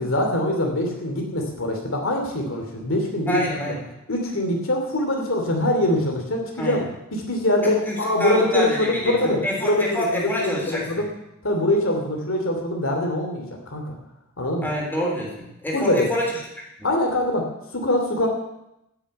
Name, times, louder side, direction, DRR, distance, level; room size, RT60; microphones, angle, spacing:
voice 1, 0.0-3.6 4.1-6.8 7.1-11.1 11.4-13.9 14.4-14.7 15.7-16.1 16.8-17.5 17.7-18.3, left 1 dB, 65° left, 2 dB, 2.9 m, -23 dB
voice 2, 3.3-3.9 6.6-6.8 7.6-11.1 14.6-16.3, equal, 10° left, -3 dB, 3.5 m, -27 dB
15.0 x 6.8 x 8.9 m, 0.86 s
head